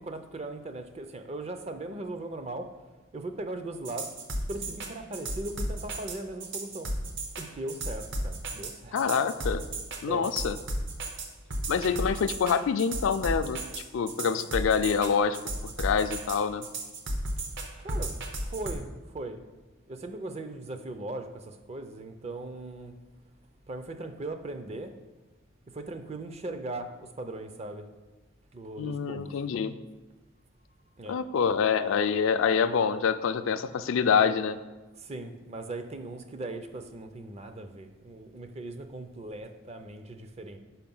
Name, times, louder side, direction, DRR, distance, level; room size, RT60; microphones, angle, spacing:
voice 1, 0.0-2.7 3.1-4.1 4.5-6.9 7.4-9.0 10.1-10.3 17.8-19.4 19.9-23.0 23.7-24.9 25.7-27.9 28.5-29.4 31.0-31.2 35.0-40.6, right 2 dB, 30° right, 7 dB, 0.5 m, -39 dB
sound 1, 3.9-18.7, right 1 dB, 60° right, 0.9 m, -34 dB
voice 2, 8.9-9.6 10.0-10.6 11.7-15.4 15.6-16.6 28.8-29.7 31.1-34.6, left 6 dB, 65° left, 11 dB, 0.3 m, -26 dB
5.7 x 5.0 x 5.4 m, 1.2 s
head